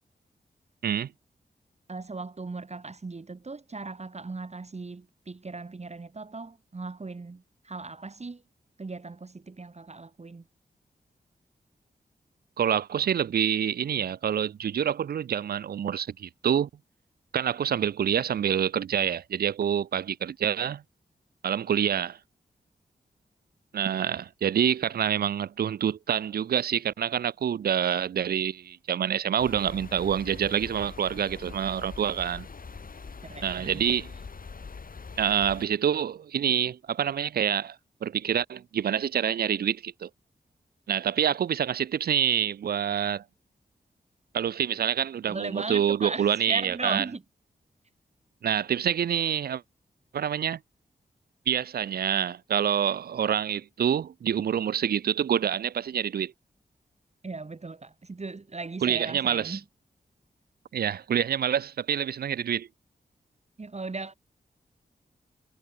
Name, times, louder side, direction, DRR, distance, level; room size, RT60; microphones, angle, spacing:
voice 1, 1.9-8.4 8.8-10.4 33.2-33.8 45.3-47.2 57.2-59.6 63.6-64.1, right 3 dB, 40° right, 1.7 m, -37 dB
voice 2, 12.6-16.7 17.3-20.8 21.4-22.2 23.7-32.5 33.4-34.1 35.2-37.8 38.0-40.1 40.9-43.2 44.3-47.0 48.4-49.6 50.1-50.6 51.5-56.3 58.8-59.6 60.7-62.7, right 9 dB, 65° right, 0.4 m, -27 dB
sound 1, 29.4-35.7, left 5 dB, 55° left, 1.9 m, -43 dB
cardioid pair, 45°, 17 cm